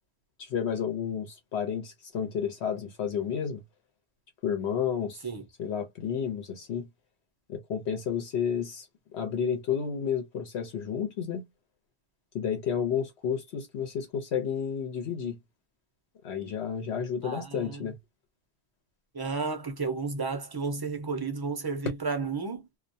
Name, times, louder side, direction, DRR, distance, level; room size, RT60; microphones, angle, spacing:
voice 1, 0.4-3.6 4.4-5.2 5.6-6.9 7.5-8.9 9.1-11.4 12.3-15.4 16.2-18.0, left 7 dB, 70° left, 0.9 m, -31 dB
voice 2, 17.2-17.9 19.1-22.7, right 4 dB, 30° right, 0.5 m, -32 dB
2.3 x 2.1 x 2.6 m
omnidirectional pair, 1.2 m